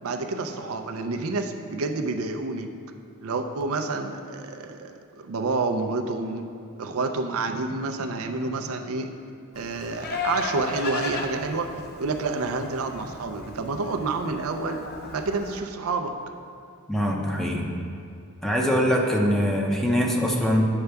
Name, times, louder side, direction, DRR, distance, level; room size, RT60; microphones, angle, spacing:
voice 1, 0.0-2.7 3.2-6.4 6.8-9.1 9.5-11.7 12.0-14.8 15.1-16.1, right 3 dB, 85° right, 5 dB, 0.5 m, -29 dB
Livestock farm animals working animals, 9.5-15.6, left 3 dB, 50° left, 0.6 m, -35 dB
voice 2, 16.9-17.7 18.4-20.7, equal, ahead, -1 dB, 0.6 m, -23 dB
8.0 x 6.7 x 3.4 m, 2.4 s
head